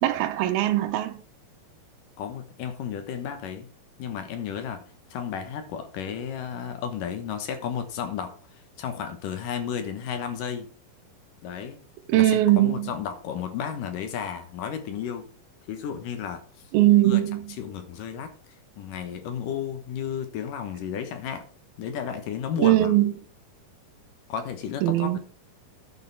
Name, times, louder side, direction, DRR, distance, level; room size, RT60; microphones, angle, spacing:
voice 1, 0.0-1.2 12.1-12.9 16.7-17.6 22.6-23.1 24.8-25.2, right 14 dB, 85° right, 2.7 m, -21 dB
voice 2, 2.2-3.7 4.0-4.8 5.1-10.7 11.4-11.8 12.1-15.3 15.7-16.4 17.0-17.2 17.6-18.3 18.8-21.5 21.8-22.9 24.3-25.2, left 8 dB, 70° left, 2.6 m, -33 dB
11.0 x 6.5 x 4.6 m
omnidirectional pair, 4.3 m